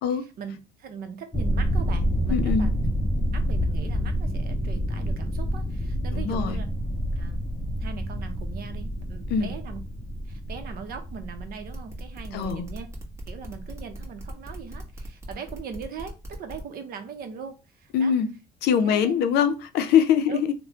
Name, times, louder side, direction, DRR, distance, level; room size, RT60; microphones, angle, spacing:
voice 1, 0.4-2.7 3.3-6.6 7.2-7.5 7.8-9.8 10.3-12.9 13.3-18.1 18.8-19.2 20.3-20.4, right 6 dB, 60° right, 0.7 m, -40 dB
sound 1, 1.3-15.0, equal, 15° left, 0.4 m, -28 dB
voice 2, 2.3-2.7 6.1-6.6 9.3-9.5 12.3-12.7 17.9-18.3 18.6-20.5, left 8 dB, 75° left, 0.5 m, -23 dB
sound 2, 11.7-16.6, right 1 dB, 15° right, 1.1 m, -41 dB
3.2 x 2.1 x 2.8 m
cardioid pair, 110°, 17 cm